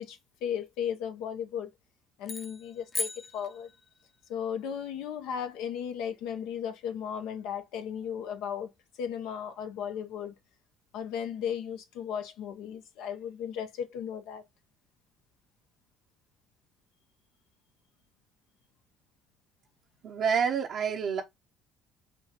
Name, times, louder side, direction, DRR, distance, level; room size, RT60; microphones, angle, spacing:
voice 1, 0.0-1.7 2.2-3.7 4.3-8.7 9.0-10.3 10.9-14.4, left 8 dB, 75° left, 0.8 m, -35 dB
sound 1, 2.2-4.2, left 3 dB, 30° left, 0.3 m, -38 dB
voice 2, 20.0-21.2, right 7 dB, 60° right, 0.7 m, -28 dB
5.2 x 2.2 x 2.9 m
supercardioid pair, 70°, 0 cm